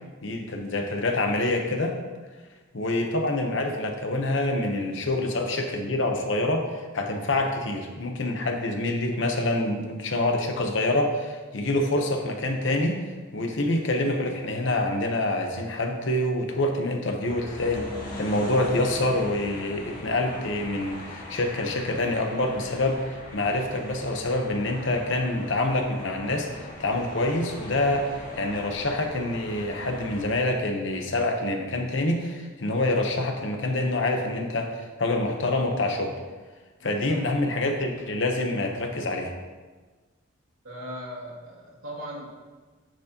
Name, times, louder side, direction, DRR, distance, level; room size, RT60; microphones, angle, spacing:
voice 1, 0.2-2.0 2.7-13.0 13.3-17.9 18.2-23.0 23.3-26.5 26.8-28.1 28.4-36.1 36.8-39.3, left 2 dB, 60° left, 3 dB, 1.0 m, -26 dB
sound 1, 17.2-30.2, left 1 dB, 40° left, 1.9 m, -41 dB
voice 2, 36.8-37.2 40.6-42.3, equal, 90° right, -6 dB, 2.0 m, -38 dB
10.0 x 6.2 x 2.9 m, 1.3 s
head